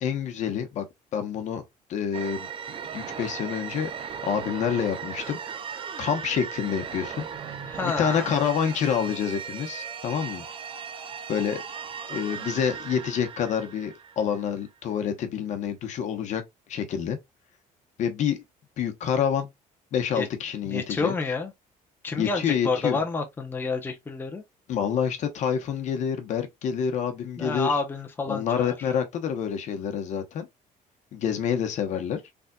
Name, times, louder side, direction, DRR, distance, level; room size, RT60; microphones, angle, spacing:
voice 1, 0.0-0.9 1.1-1.6 1.9-2.5 2.9-5.4 6.0-7.3 7.8-10.4 11.3-11.6 12.1-16.4 16.7-17.2 18.0-18.4 18.8-19.5 19.9-21.1 22.1-23.0 24.7-27.7 28.3-30.5 31.1-32.2, left 8 dB, 55° left, 0.9 m, -27 dB
sound 1, 2.1-14.6, right 7 dB, 35° right, 0.5 m, -37 dB
voice 2, 7.7-8.3 20.1-20.3 20.7-21.5 22.0-24.4 27.4-28.7, left 4 dB, 15° left, 0.6 m, -29 dB
4.0 x 3.4 x 2.3 m
cardioid pair, 160°, 15 cm